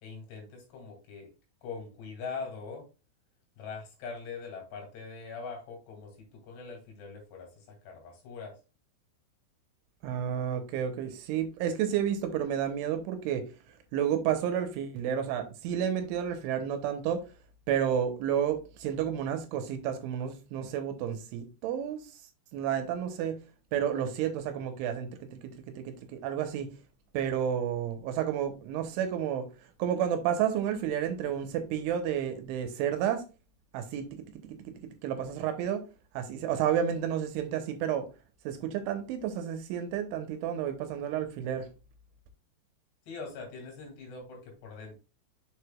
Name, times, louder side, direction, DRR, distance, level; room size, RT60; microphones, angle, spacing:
voice 1, 0.0-1.3 1.6-2.9 3.6-8.5 43.1-45.0, left 4 dB, 60° left, 3.9 m, -42 dB
voice 2, 10.0-13.5 13.9-17.3 17.7-22.1 22.5-23.4 23.7-26.7 27.1-29.5 29.8-33.2 33.7-35.8 36.1-38.1 38.4-41.7, right 9 dB, 80° right, 3.2 m, -31 dB
7.0 x 6.6 x 2.2 m
omnidirectional pair, 5.8 m